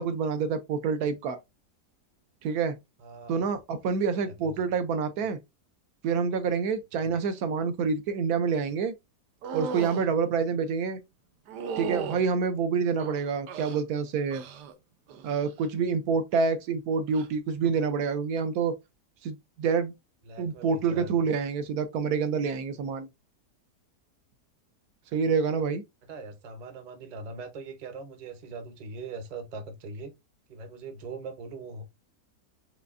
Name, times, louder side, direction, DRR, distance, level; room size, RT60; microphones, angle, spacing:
voice 1, 0.0-1.4 2.4-2.8 3.3-5.4 6.0-8.9 9.5-11.0 11.8-14.4 15.2-18.8 19.2-19.9 20.4-23.1 25.1-25.8, right 5 dB, 75° right, 1.1 m, -27 dB
voice 2, 3.0-3.4 4.2-4.6 20.2-21.3 26.1-30.1 30.5-31.9, right 3 dB, 35° right, 0.7 m, -41 dB
sound 1, 9.4-10.0 11.5-12.2 13.0-13.8 14.3-14.7 15.1-15.5 17.1-17.3, right 6 dB, 90° right, 1.3 m, -36 dB
5.0 x 3.3 x 2.5 m
omnidirectional pair, 1.7 m